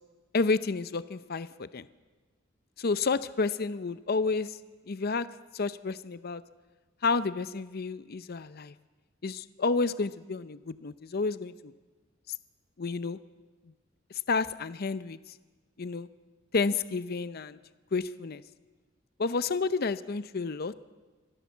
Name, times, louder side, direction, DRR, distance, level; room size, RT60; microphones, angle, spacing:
voice 1, 0.3-1.9 2.8-4.6 4.9-5.3 5.5-6.4 7.0-8.7 9.2-11.7 12.8-13.2 14.3-15.2 15.8-16.1 16.5-17.6 17.9-18.4 19.2-20.7, left 4 dB, 50° left, 14 dB, 0.6 m, -30 dB
25.5 x 16.5 x 7.2 m, 1.3 s
head